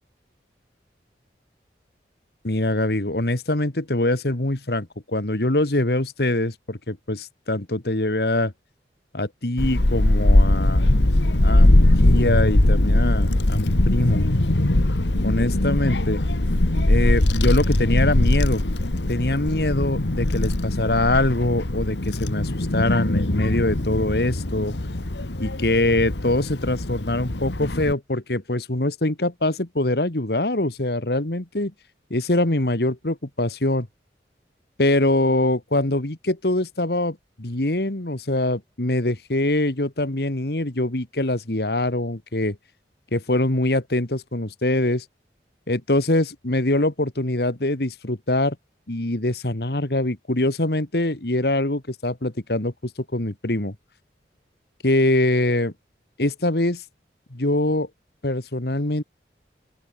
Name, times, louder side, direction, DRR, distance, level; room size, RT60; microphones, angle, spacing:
voice 1, 2.4-8.5 9.1-10.9 11.4-14.3 15.2-16.2 16.9-18.6 19.1-24.8 25.4-31.7 32.1-33.9 34.8-42.6 43.1-45.1 45.7-48.6 48.9-52.7 53.1-53.8 54.8-55.7 56.2-56.8 57.3-57.9 58.2-59.0, left 1 dB, 65° left, 1.9 m, -23 dB
Child speech kid speaking / Wind, 9.6-27.9, left 1 dB, 85° left, 1.6 m, -21 dB
open air
head